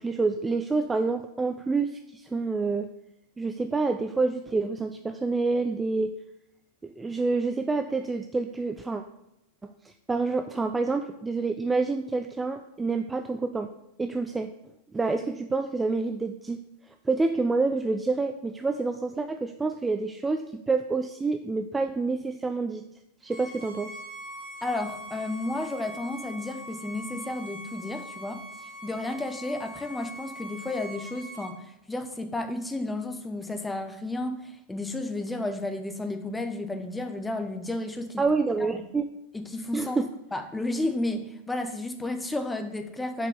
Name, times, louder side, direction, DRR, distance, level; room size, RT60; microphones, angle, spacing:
voice 1, 0.0-2.9 3.4-6.1 6.8-9.0 9.6-13.7 14.0-14.5 14.9-16.6 16.9-22.8 23.2-24.0 38.2-39.1 39.7-40.1, right 3 dB, 10° right, 7 dB, 0.4 m, -28 dB
Bowed string instrument, 23.3-31.5, equal, 35° right, 1.7 m, -42 dB
voice 2, 24.6-38.2 38.7-38.8 39.3-40.0 40.3-43.3, left 2 dB, 10° left, 6 dB, 1.0 m, -32 dB
6.6 x 5.1 x 6.8 m, 0.86 s
figure-of-eight pair, 90°, 0 cm